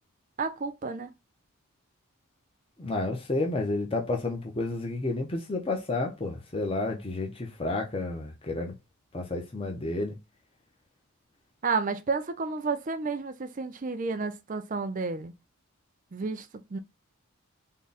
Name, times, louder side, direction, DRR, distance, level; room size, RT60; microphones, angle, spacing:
voice 1, 0.4-1.1 11.6-15.3 16.1-16.8, right 4 dB, 35° right, 0.5 m, -31 dB
voice 2, 2.8-8.7 9.1-10.2, left 2 dB, 25° left, 0.7 m, -31 dB
3.7 x 2.2 x 4.0 m
head